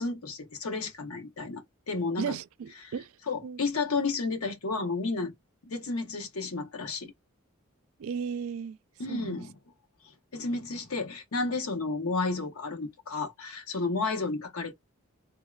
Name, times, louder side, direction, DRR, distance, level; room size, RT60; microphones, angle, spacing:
voice 1, 0.0-2.4 2.8-2.9 3.3-5.3 5.7-7.1 9.0-9.5 10.3-14.7, left 3 dB, 85° left, 0.8 m, -32 dB
voice 2, 2.2-3.1 3.4-3.6 8.0-8.8 9.1-9.4, right 6 dB, 75° right, 0.3 m, -35 dB
3.5 x 2.1 x 2.3 m
head